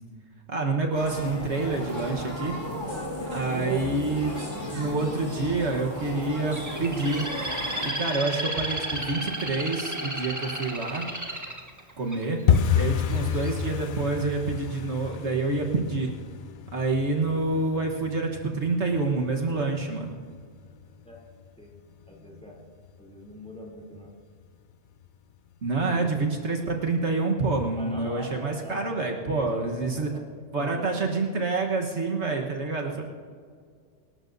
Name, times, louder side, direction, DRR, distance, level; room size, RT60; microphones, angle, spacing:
voice 1, 0.5-2.5 3.3-7.3 7.8-11.1 12.0-12.4 12.7-16.1 16.7-20.2 25.6-30.1 30.5-33.0, right 3 dB, 60° right, 1 dB, 1.5 m, -27 dB
sound 1, 0.9-7.9, equal, 25° left, 4.3 m, -35 dB
Bird, 6.5-12.6 13.1-13.5, right 1 dB, 15° right, 1.5 m, -33 dB
sound 2, 12.5-23.2 23.4-24.2 24.4-24.7 25.0-25.4 25.6-25.8 26.3-26.8 27.1-27.2 27.7-27.8, left 8 dB, 60° left, 0.5 m, -30 dB
voice 2, 22.1-22.6 23.0-24.1 25.9-26.3 27.8-30.2 30.6-30.9 32.9-33.0, equal, 5° left, -2 dB, 2.9 m, -42 dB
25.5 x 13.0 x 2.7 m, 2.1 s
omnidirectional pair, 1.3 m